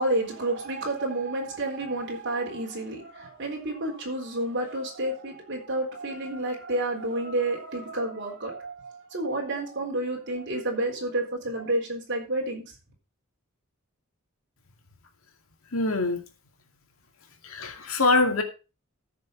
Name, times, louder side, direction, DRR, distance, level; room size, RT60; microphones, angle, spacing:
voice 1, 0.0-12.7, right 1 dB, 55° right, -1 dB, 3.8 m, -30 dB
voice 2, 15.7-16.2 17.5-18.4, left 3 dB, 80° left, 5 dB, 2.3 m, -23 dB
14.0 x 6.5 x 4.6 m, 0.32 s
head